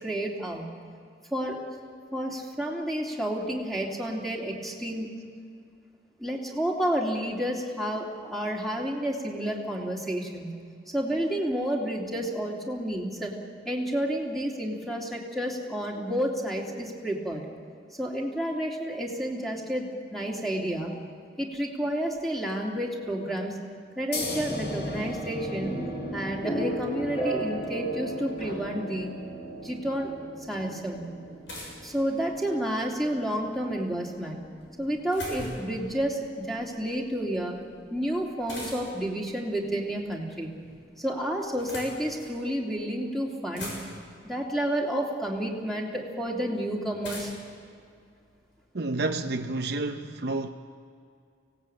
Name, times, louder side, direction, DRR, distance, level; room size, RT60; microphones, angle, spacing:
voice 1, 0.0-0.7 1.3-1.7 2.1-5.1 6.2-10.5 10.9-13.3 13.6-17.4 18.0-20.9 21.4-23.6 24.0-25.7 26.1-29.2 29.6-30.1 30.5-31.1 31.8-34.4 34.8-37.6 37.9-40.5 41.0-43.7 44.2-47.3, equal, ahead, 3.0 m, -30 dB
sound 1, 24.1-31.3, left 3 dB, 60° left, 4.3 m, -41 dB
sound 2, 24.2-37.9, right 1 dB, 30° left, 7.5 m, -37 dB
sound 3, 31.5-32.6 34.6-35.8 38.5-39.1 40.2-40.8 41.4-42.4 43.0-43.1 43.3-44.2 45.3-45.4 47.0-48.6, left 1 dB, 85° left, 7.4 m, -41 dB
voice 2, 48.7-50.5, right 2 dB, 60° right, 0.8 m, -30 dB
25.0 x 18.0 x 8.9 m
head